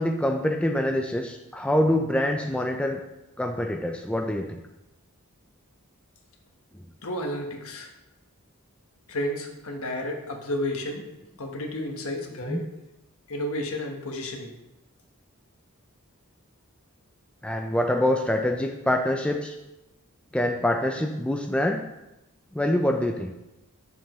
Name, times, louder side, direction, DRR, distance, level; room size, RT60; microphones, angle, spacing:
voice 1, 0.0-3.0 3.4-4.6 12.5-12.6 17.4-19.6 20.3-21.8 22.5-23.3, left 1 dB, 5° left, 3 dB, 0.4 m, -25 dB
voice 2, 7.0-7.9 9.1-11.0 11.4-12.6 13.3-14.5, left 1 dB, 65° left, 2 dB, 1.3 m, -31 dB
8.8 x 7.1 x 3.1 m, 0.96 s
head